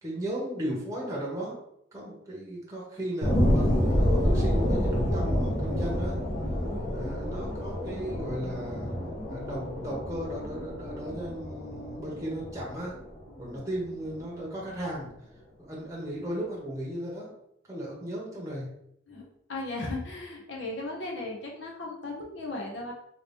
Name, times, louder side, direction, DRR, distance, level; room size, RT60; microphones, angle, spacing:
voice 1, 0.0-1.6 1.9-6.2 6.9-8.9 9.3-12.9 13.4-15.1 15.7-17.3 17.7-18.7, right 1 dB, 15° right, -4 dB, 0.9 m, -35 dB
sound 1, 3.2-14.2 14.7-14.8, equal, 45° left, 1.0 m, -28 dB
voice 2, 19.1-22.9, left 2 dB, 70° left, 0 dB, 0.8 m, -36 dB
2.9 x 2.8 x 3.4 m, 0.74 s
head